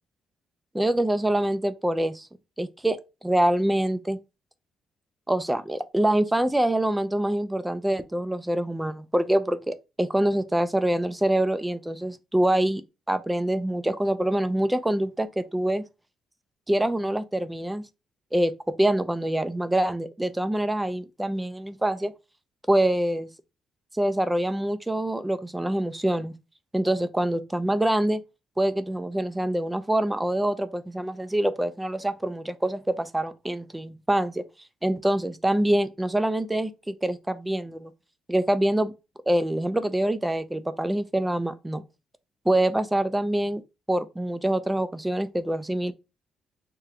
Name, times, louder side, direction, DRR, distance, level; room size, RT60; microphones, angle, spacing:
voice 1, 0.7-2.3 2.6-3.0 3.2-4.2 5.3-12.8 13.1-15.8 16.7-17.8 18.3-22.1 22.7-23.3 23.9-26.3 26.7-28.2 28.6-34.4 34.8-37.9 38.3-38.9 39.3-41.8 42.5-43.6 43.9-45.9, right 1 dB, 10° right, 0.4 m, -25 dB
3.2 x 2.2 x 3.6 m
cardioid pair, 90°, 0 cm